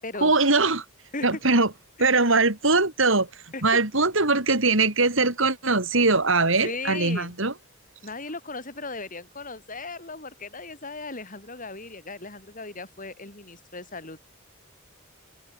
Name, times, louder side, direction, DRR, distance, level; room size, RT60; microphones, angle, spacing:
voice 1, 0.2-0.8 1.2-1.7 2.0-7.5, right 3 dB, 65° right, 4.4 m, -21 dB
voice 2, 6.6-7.3 8.0-14.2, left 3 dB, 40° left, 7.3 m, -37 dB
head